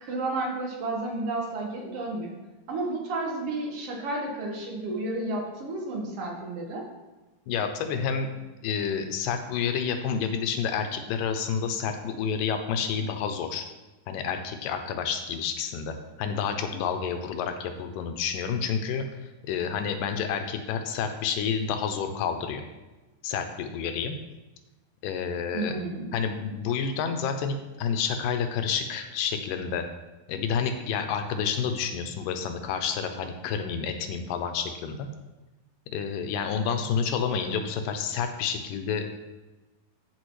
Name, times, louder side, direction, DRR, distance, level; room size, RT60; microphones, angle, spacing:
voice 1, 0.0-2.3 2.7-6.8 25.5-26.1, right 2 dB, 55° right, -1 dB, 1.9 m, -31 dB
voice 2, 7.5-8.3 8.6-13.7 14.1-22.6 23.2-24.2 25.0-25.7 26.1-29.9 30.3-35.1 35.9-39.1, left 6 dB, 80° left, 7 dB, 2.2 m, -29 dB
14.0 x 4.8 x 3.2 m, 1.1 s
omnidirectional pair, 4.0 m